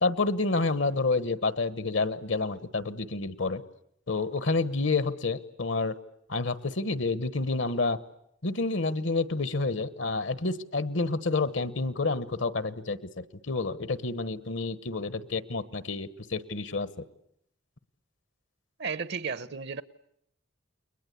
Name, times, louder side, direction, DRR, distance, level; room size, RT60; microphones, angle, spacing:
voice 1, 0.0-3.6 4.1-5.9 6.3-8.0 8.4-16.9, left 3 dB, 70° left, 15 dB, 1.3 m, -29 dB
voice 2, 18.8-19.8, right 5 dB, 60° right, 15 dB, 1.1 m, -33 dB
29.5 x 22.0 x 8.4 m, 0.75 s
head